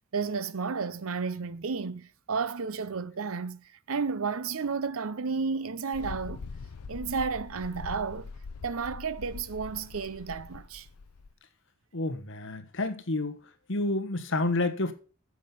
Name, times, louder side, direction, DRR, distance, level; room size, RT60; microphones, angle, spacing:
voice 1, 0.1-6.4 6.9-8.3 8.6-10.9, right 5 dB, 65° right, 0.7 m, -32 dB
Mechanical fan, 5.9-11.3, left 4 dB, 80° left, 0.5 m, -43 dB
voice 2, 11.9-13.4 13.7-14.9, left 2 dB, 55° left, 1.2 m, -29 dB
10.0 x 7.3 x 7.0 m
head